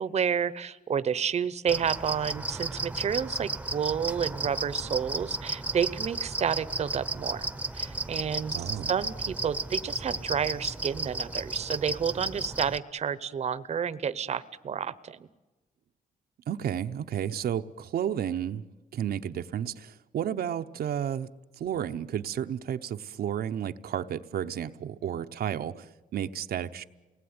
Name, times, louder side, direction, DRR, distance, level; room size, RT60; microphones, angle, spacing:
voice 1, 0.0-7.5 7.7-15.2, right 7 dB, 45° right, 0.8 m, -30 dB
sound 1, 1.7-12.8, right 2 dB, 10° right, 0.8 m, -34 dB
voice 2, 8.5-8.9 16.5-18.6 18.9-21.3 21.6-26.8, right 9 dB, 80° right, 0.8 m, -32 dB
29.0 x 19.5 x 9.6 m
wide cardioid pair, 150°, 16 cm